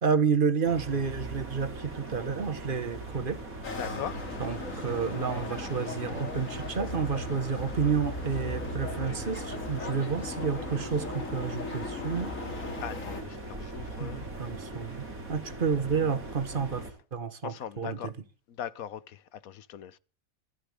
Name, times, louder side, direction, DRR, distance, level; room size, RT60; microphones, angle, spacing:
voice 1, 0.0-3.4 4.4-12.3 14.0-16.8 17.1-18.1, right 6 dB, 40° right, 1.4 m, -30 dB
sound 1, 0.6-16.9, right 2 dB, 90° right, 4.7 m, -40 dB
sound 2, 3.6-13.2, left 3 dB, 70° left, 2.9 m, -38 dB
voice 2, 3.7-4.3 12.8-14.2 17.4-18.1 18.5-20.0, left 9 dB, 85° left, 1.3 m, -40 dB
25.5 x 10.0 x 3.5 m
omnidirectional pair, 1.4 m